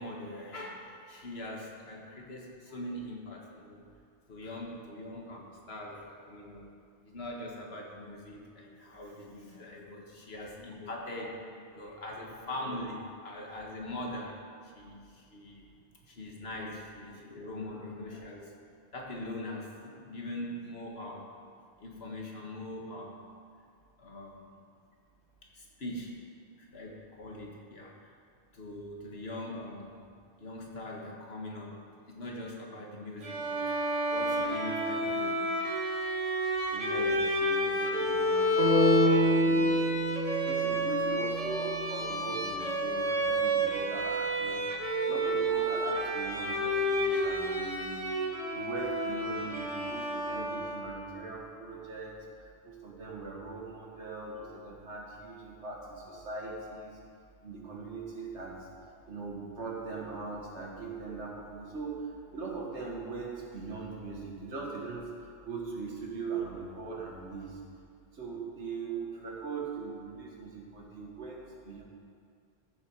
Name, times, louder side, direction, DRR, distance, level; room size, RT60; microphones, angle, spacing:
voice 1, 0.0-3.8 4.3-6.7 7.0-14.4 14.6-15.7 16.1-18.5 18.9-21.3 21.8-23.3 24.0-24.6 25.4-26.2 26.6-28.1 28.5-30.1 30.4-33.7 34.1-35.5, left 1 dB, 65° left, -1 dB, 1.8 m, -42 dB
Bowed string instrument, 33.2-51.0, equal, 35° right, 1.1 m, -30 dB
voice 2, 36.7-39.9 40.4-44.7 45.0-48.1 48.5-57.0 57.4-58.7 59.0-67.6 68.1-71.8, right 4 dB, 90° right, -1 dB, 1.9 m, -40 dB
sound 1, 38.6-42.6, equal, 70° right, 1.6 m, -28 dB
14.0 x 7.1 x 4.7 m, 2.3 s
omnidirectional pair, 1.1 m